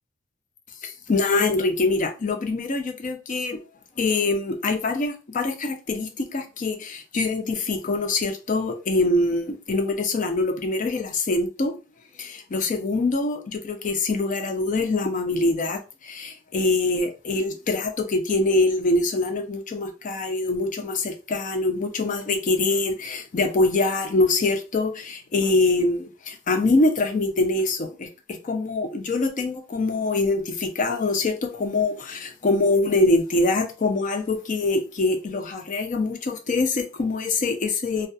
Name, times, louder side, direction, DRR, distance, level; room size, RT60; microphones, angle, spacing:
voice 1, 0.8-3.6 4.0-11.7 12.2-38.1, left 2 dB, 40° left, 0.4 m, -24 dB
2.2 x 2.2 x 2.6 m
head